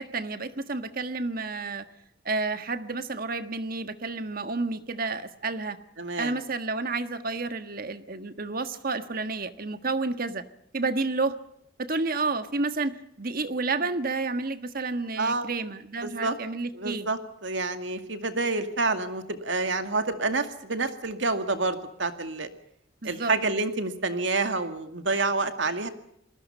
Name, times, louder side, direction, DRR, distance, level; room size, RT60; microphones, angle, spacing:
voice 1, 0.0-1.9 2.2-5.8 6.2-10.4 10.7-11.4 11.8-17.1 23.0-23.3, right 3 dB, 50° right, 10 dB, 1.5 m, -30 dB
voice 2, 6.0-6.4 15.2-15.5 16.0-16.4 16.7-22.5 23.0-25.9, right 3 dB, 70° right, 8 dB, 2.2 m, -28 dB
28.0 x 20.5 x 5.6 m, 0.75 s
head